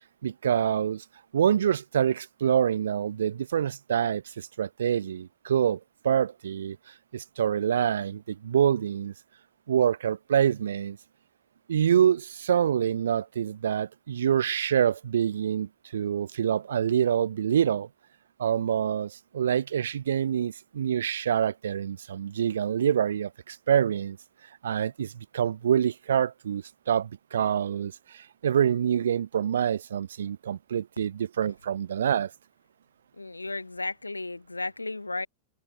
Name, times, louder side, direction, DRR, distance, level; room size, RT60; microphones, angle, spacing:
voice 1, 0.2-1.0 1.3-6.8 7.1-9.1 9.7-11.0 11.7-17.9 18.4-24.2 24.6-32.3, right 9 dB, 65° right, 0.9 m, -26 dB
voice 2, 33.1-35.3, left 2 dB, 80° left, 2.9 m, -34 dB
figure-of-eight pair, 90°, 0 cm